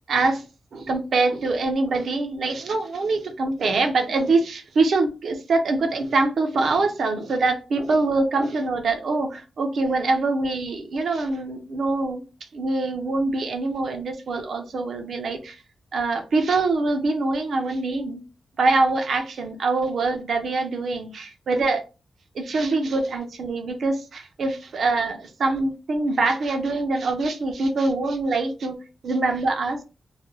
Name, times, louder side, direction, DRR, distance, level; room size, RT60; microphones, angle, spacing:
voice 1, 0.1-0.4 0.7-12.2 12.5-15.6 15.9-18.2 18.6-21.8 22.3-28.8 29.0-29.8, right 3 dB, 70° right, 0.6 m, -24 dB
3.3 x 2.2 x 2.7 m
wide cardioid pair, 120°, 0 cm